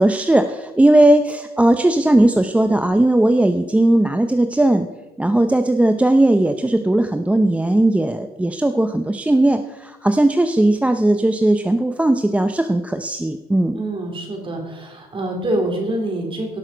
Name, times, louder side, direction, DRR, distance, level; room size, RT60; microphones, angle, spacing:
voice 1, 0.0-4.9 5.2-13.8, right 1 dB, 10° right, 7 dB, 0.5 m, -17 dB
voice 2, 13.7-16.6, right 1 dB, 30° right, 2 dB, 3.6 m, -25 dB
17.5 x 6.4 x 5.1 m, 1.0 s
cardioid pair, 110°, 17 cm